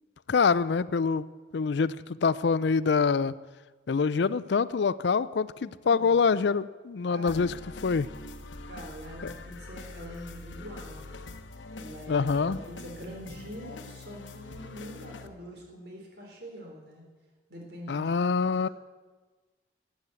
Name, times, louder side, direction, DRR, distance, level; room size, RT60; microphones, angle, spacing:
voice 1, 0.3-1.3 1.5-2.0 2.2-3.3 3.9-7.6 7.8-8.1 9.2-9.3 12.1-12.6 17.9-18.7, left 5 dB, 70° left, 17 dB, 0.4 m, -25 dB
voice 2, 5.6-6.2 7.1-7.5 8.6-11.2 11.8-17.0 17.5-18.3 18.6-18.7, equal, 60° right, 0 dB, 3.8 m, -44 dB
sound 1, 7.3-15.3, left 2 dB, 90° left, 1.0 m, -44 dB
13.0 x 9.3 x 8.3 m, 1.3 s
head